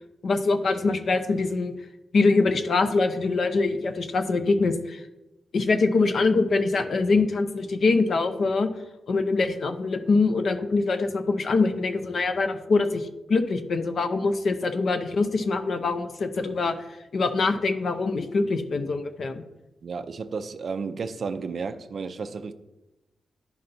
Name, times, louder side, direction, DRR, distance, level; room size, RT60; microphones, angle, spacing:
voice 1, 0.2-1.7 2.1-5.0 5.5-8.7 9.1-16.8 17.1-19.4, left 3 dB, 50° left, 0.5 m, -24 dB
voice 2, 19.8-22.5, right 5 dB, 45° right, 0.4 m, -32 dB
11.0 x 5.6 x 2.6 m
wide cardioid pair, 175°, 0 cm